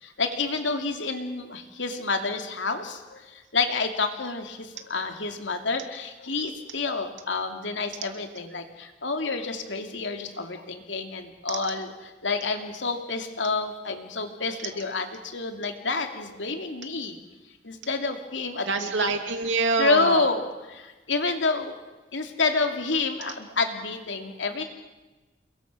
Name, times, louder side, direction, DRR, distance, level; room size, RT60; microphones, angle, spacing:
voice 1, 0.0-11.9 12.2-17.2 17.6-19.1 19.8-20.4 20.7-21.7 22.1-24.6, left 3 dB, 80° left, 5 dB, 2.7 m, -29 dB
voice 2, 18.7-20.3 23.2-23.3, right 4 dB, 85° right, 5 dB, 2.7 m, -25 dB
29.0 x 22.0 x 6.3 m, 1.1 s
head